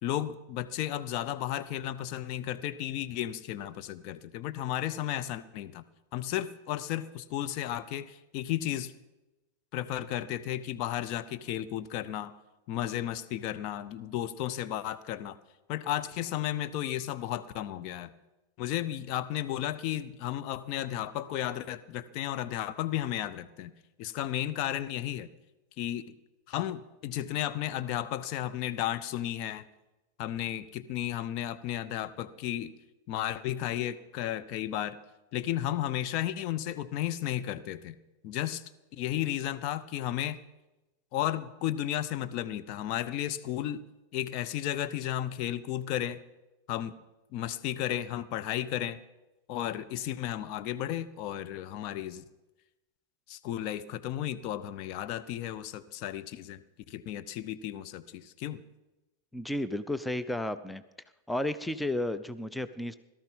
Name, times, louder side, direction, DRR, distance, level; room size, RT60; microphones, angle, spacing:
voice 1, 0.0-5.8 6.1-8.9 9.7-12.3 12.7-15.4 15.7-18.1 18.6-23.7 24.0-25.3 25.8-26.0 26.5-29.6 30.2-32.7 33.1-35.0 35.3-38.0 38.2-38.6 38.9-40.4 41.1-43.8 44.1-46.2 46.7-47.0 47.3-49.0 49.5-52.2 53.3-56.6 56.9-58.6, left 12 dB, 40° left, 11 dB, 0.7 m, -33 dB
voice 2, 59.3-60.8 61.3-63.0, left 1 dB, 5° left, 12 dB, 0.6 m, -32 dB
17.5 x 12.5 x 5.4 m, 1.0 s
figure-of-eight pair, 90°, 0 cm